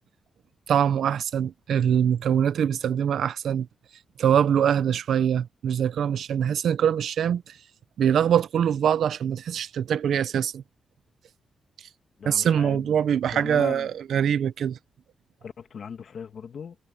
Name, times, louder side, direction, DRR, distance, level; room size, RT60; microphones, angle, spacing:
voice 1, 0.7-3.7 4.2-7.6 8.0-10.6 12.2-14.8, right 8 dB, 75° right, 0.8 m, -23 dB
voice 2, 12.2-12.9 13.3-13.9 15.4-16.8, left 6 dB, 55° left, 1.9 m, -38 dB
cardioid pair, 105°, 0 cm